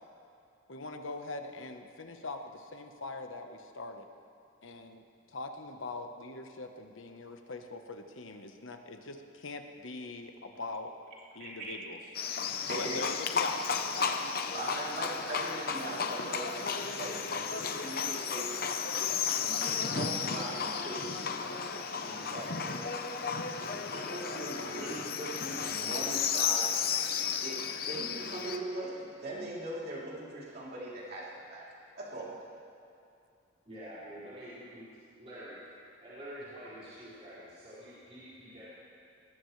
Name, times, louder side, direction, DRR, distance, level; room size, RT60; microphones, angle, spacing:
voice 1, 0.7-4.1 4.6-10.9 11.4-12.0 12.7-13.6 16.4-16.5, left 3 dB, 80° left, 5 dB, 1.2 m, -42 dB
voice 2, 11.4-11.8 12.7-13.0 14.0-14.1 14.5-18.8 19.4-21.6 21.9-23.0 23.6-26.7 27.4-31.6 32.0-32.3, right 1 dB, 50° right, -6 dB, 3.4 m, -41 dB
Livestock farm animals working animals, 12.1-28.6, left 6 dB, 50° left, 0.8 m, -33 dB
voice 3, 33.7-34.8 35.2-35.6 36.0-38.6, equal, 30° right, -13 dB, 5.4 m, -47 dB
22.0 x 19.5 x 3.3 m, 2.4 s
head